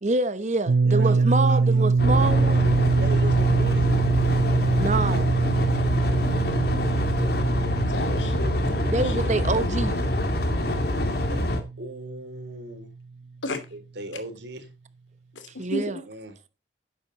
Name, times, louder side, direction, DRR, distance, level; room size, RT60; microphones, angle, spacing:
voice 1, 0.0-2.7 4.8-5.3 8.9-10.0 15.6-16.0, right 2 dB, 40° right, 1.0 m, -26 dB
sound 1, 0.7-12.4, right 4 dB, 85° right, 0.7 m, -24 dB
voice 2, 0.8-1.9 3.0-3.9 9.1-9.4 11.0-11.5 11.8-12.9 13.7-14.7 16.0-16.4, right 1 dB, 65° right, 3.6 m, -38 dB
sound 2, 2.0-11.6, left 1 dB, 55° left, 2.4 m, -25 dB
voice 3, 7.9-9.3 13.4-13.6 15.3-15.4 15.7-16.0, left 2 dB, 85° left, 2.9 m, -33 dB
12.0 x 9.7 x 4.1 m
head